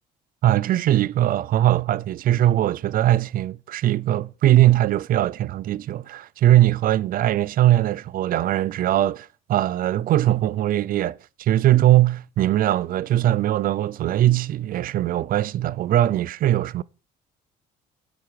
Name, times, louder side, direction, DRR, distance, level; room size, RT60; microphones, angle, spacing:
voice 1, 0.4-16.8, right 13 dB, 55° right, 0.5 m, -20 dB
11.5 x 9.5 x 4.8 m
cardioid pair, 110°, 17 cm